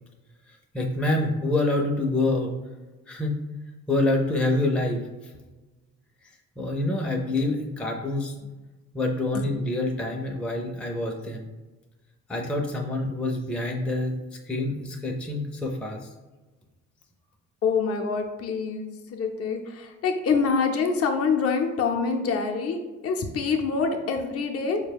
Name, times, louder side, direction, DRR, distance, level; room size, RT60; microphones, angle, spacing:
voice 1, 0.5-2.5 3.1-3.4 3.9-5.0 6.6-8.4 8.9-11.5 12.3-16.1, left 2 dB, 5° left, 0 dB, 0.4 m, -26 dB
voice 2, 17.6-22.8 23.0-24.8, left 5 dB, 50° left, 3 dB, 0.6 m, -26 dB
4.4 x 2.2 x 3.4 m, 1.2 s
cardioid pair, 90°, 30 cm